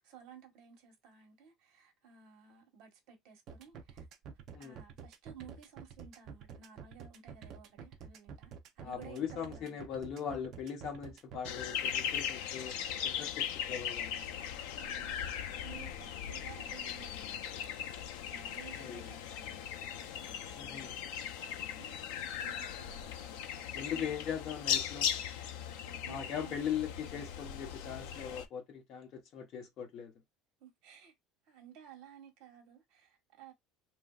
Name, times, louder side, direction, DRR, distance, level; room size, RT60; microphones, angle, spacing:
voice 1, 0.0-4.1 4.6-9.9 14.7-22.0 22.4-24.1 25.8-26.6 30.6-31.1 31.4-33.5, right 8 dB, 60° right, 1.1 m, -56 dB
sound 1, 3.5-11.5, right 6 dB, 45° right, 0.5 m, -49 dB
voice 2, 8.8-12.7 13.0-14.3 18.8-19.1 20.6-20.9 23.7-25.1 26.1-30.1, left 8 dB, 45° left, 0.9 m, -40 dB
sound 2, 11.4-28.5, left 9 dB, 90° left, 0.4 m, -38 dB
3.0 x 2.6 x 2.3 m
cardioid pair, 155°, 0 cm